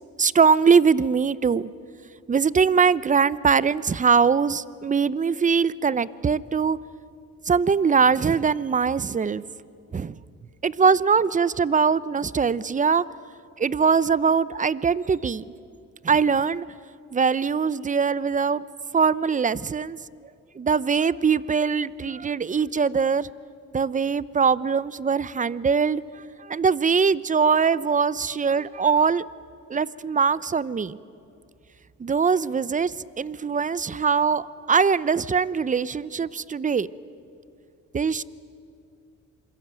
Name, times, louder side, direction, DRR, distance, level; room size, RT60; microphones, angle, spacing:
voice 1, 0.2-1.7 2.3-6.8 7.5-9.4 9.9-10.2 10.6-13.0 13.6-15.4 16.0-16.6 17.1-18.6 18.9-20.0 20.5-23.3 23.7-29.2 29.7-31.0 32.0-36.9 37.9-38.2, right 5 dB, 25° right, 19 dB, 0.7 m, -22 dB
27.5 x 22.0 x 9.0 m, 2.5 s
cardioid pair, 90°, 30 cm